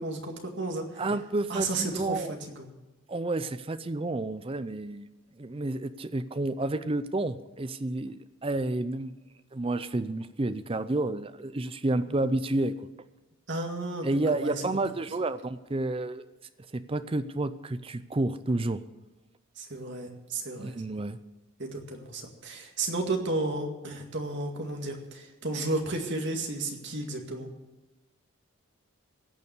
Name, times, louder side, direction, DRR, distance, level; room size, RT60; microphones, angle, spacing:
voice 1, 0.0-0.9 1.5-2.7 13.5-14.6 19.6-20.8 21.6-27.5, right 2 dB, 50° right, 2 dB, 2.1 m, -33 dB
voice 2, 1.0-2.4 3.1-5.1 5.4-9.1 9.5-12.7 14.0-16.2 16.7-18.8 20.6-21.2, right 2 dB, 25° right, 12 dB, 0.5 m, -30 dB
17.5 x 6.9 x 8.2 m, 1.0 s
head